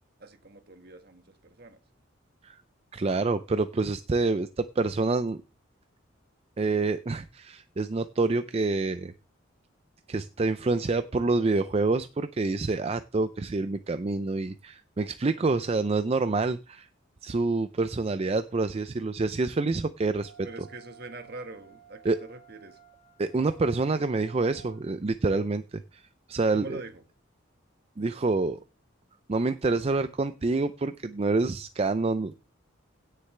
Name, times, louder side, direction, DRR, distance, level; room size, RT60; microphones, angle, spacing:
voice 1, 0.2-1.8 20.4-22.8 26.5-27.0, right 3 dB, 50° right, 7 dB, 1.6 m, -43 dB
voice 2, 2.9-5.4 6.6-9.1 10.1-16.9 17.2-20.3 22.0-22.2 23.2-26.8 28.0-28.6 29.3-32.4, right 3 dB, 30° right, 12 dB, 0.4 m, -27 dB
Wind instrument woodwind instrument, 20.2-24.8, right 7 dB, 30° left, 3.1 m, -54 dB
16.5 x 6.7 x 3.3 m, 0.31 s
head